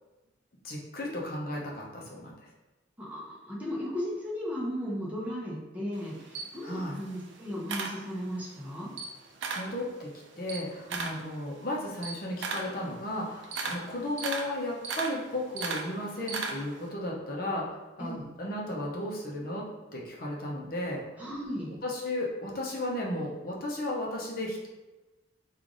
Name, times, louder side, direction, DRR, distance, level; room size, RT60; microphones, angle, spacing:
voice 1, 0.6-2.3 6.6-7.0 9.5-21.0 21.8-24.7, left 1 dB, 50° left, -2 dB, 0.7 m, -34 dB
voice 2, 3.0-8.9 10.9-11.2 18.0-18.2 21.2-21.8, equal, 10° right, -6 dB, 0.7 m, -36 dB
Camera, 5.9-8.5 8.9-9.8 10.1-16.9, right 4 dB, 75° right, 0.4 m, -36 dB
3.2 x 2.4 x 3.8 m, 1.1 s
head